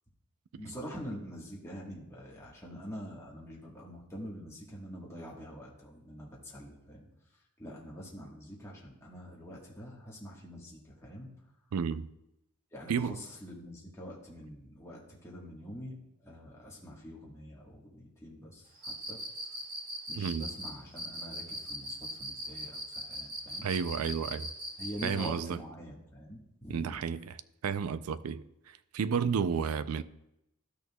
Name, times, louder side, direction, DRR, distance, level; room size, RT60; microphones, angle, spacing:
voice 1, 0.6-7.1 7.6-11.3 12.7-16.0 16.2-19.2 20.1-23.7 24.8-26.9 29.5-29.6, equal, 15° left, 1.3 m, -45 dB
voice 2, 11.7-12.1 12.9-13.2 20.1-20.5 23.6-24.5 25.0-25.6 26.7-27.4 27.6-30.0, right 6 dB, 85° right, 0.4 m, -32 dB
Cricket, 18.8-25.3, equal, 40° right, 1.9 m, -39 dB
12.5 x 6.4 x 2.2 m
head